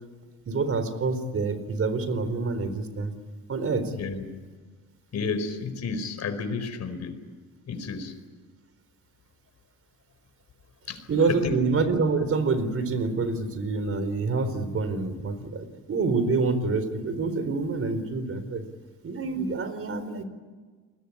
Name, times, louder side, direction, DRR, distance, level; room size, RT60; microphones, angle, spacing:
voice 1, 0.5-3.1 3.5-3.9 11.1-18.6 19.0-20.2, right 4 dB, 50° right, 11 dB, 4.3 m, -27 dB
voice 2, 5.1-7.2 7.7-8.1 10.9-11.0 11.3-11.6, left 4 dB, 60° left, 9 dB, 4.7 m, -31 dB
29.5 x 21.0 x 8.8 m, 1.4 s
cardioid pair, 90°, 30 cm